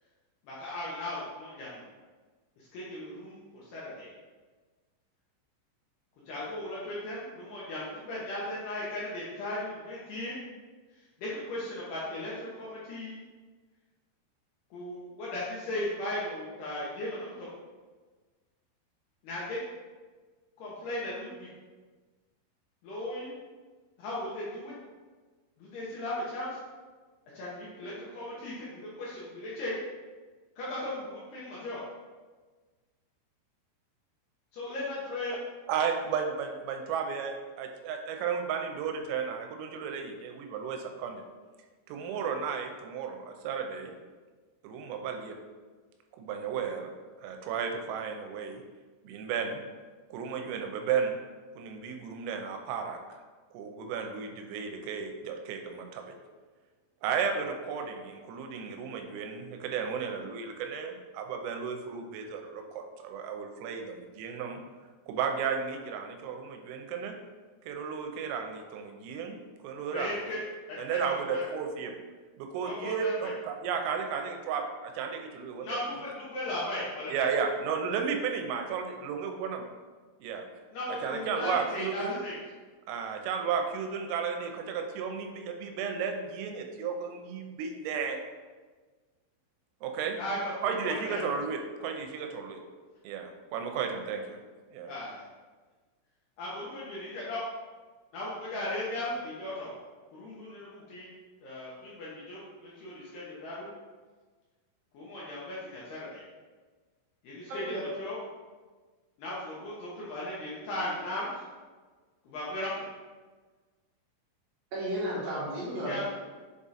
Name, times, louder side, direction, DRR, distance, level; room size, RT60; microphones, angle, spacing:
voice 1, 0.4-1.9 2.7-4.1 6.3-10.3 11.2-13.2 14.7-17.5 19.2-19.6 20.6-21.5 22.8-23.3 24.0-24.7 25.6-26.6 27.3-29.8 30.6-31.8 34.5-35.4 69.9-70.4 70.7-71.5 72.6-73.3 75.6-77.3 80.7-82.4 90.2-91.2 94.9-95.2 96.4-97.4 98.1-99.7 100.1-101.1 101.4-103.7 104.9-106.2 107.2-108.2 109.2-111.4 112.2-112.8 115.8-116.0, left 1 dB, 75° left, -7 dB, 2.5 m, -37 dB
voice 2, 35.7-41.2 41.9-43.9 44.6-45.4 46.2-46.9 47.2-48.6 49.0-49.6 50.1-51.2 51.6-53.0 53.5-56.1 57.0-64.6 65.1-67.1 67.7-69.4 69.6-70.2 70.8-71.9 72.4-75.8 77.1-79.6 80.2-80.5 80.9-82.2 82.9-88.2 89.8-90.2 90.6-92.6 93.0-94.4 94.7-94.9, right 6 dB, 85° right, 4 dB, 3.3 m, -33 dB
voice 3, 114.7-116.0, equal, 60° right, -9 dB, 2.6 m, -33 dB
7.5 x 3.6 x 4.1 m, 1.4 s
omnidirectional pair, 5.8 m